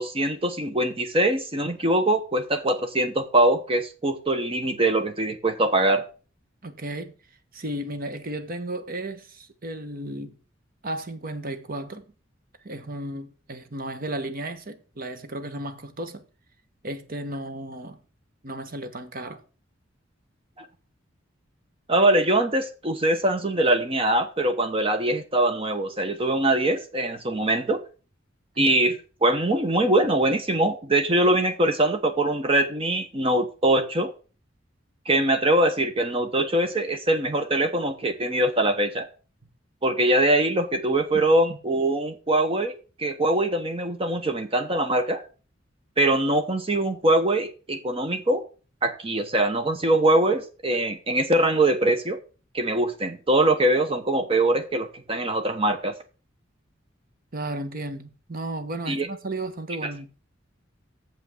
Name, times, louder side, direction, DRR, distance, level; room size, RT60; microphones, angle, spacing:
voice 1, 0.0-6.0 20.6-20.7 21.9-27.8 28.6-34.1 35.1-39.1 39.8-42.7 43.0-45.2 46.0-48.4 48.8-52.2 52.5-55.9 58.9-59.1, right 1 dB, 30° right, 0.9 m, -23 dB
voice 2, 6.6-7.1 7.5-10.4 10.8-12.0 12.6-16.2 16.8-18.0 18.4-19.4 28.5-28.7 41.1-41.6 57.3-60.1, right 1 dB, 50° right, 1.2 m, -34 dB
7.3 x 5.8 x 7.5 m
head